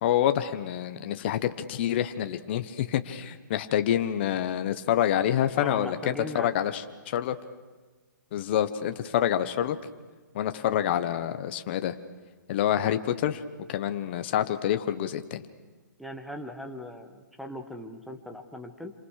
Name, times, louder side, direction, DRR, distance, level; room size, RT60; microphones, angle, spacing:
voice 1, 0.0-7.4 8.3-9.8 10.3-11.9 12.5-13.4 13.7-15.4, left 11 dB, 35° left, 9 dB, 1.3 m, -27 dB
voice 2, 5.6-6.5 16.0-18.9, left 1 dB, ahead, 3 dB, 1.5 m, -39 dB
28.0 x 26.5 x 6.6 m, 1.4 s
hypercardioid pair, 160°, 10 cm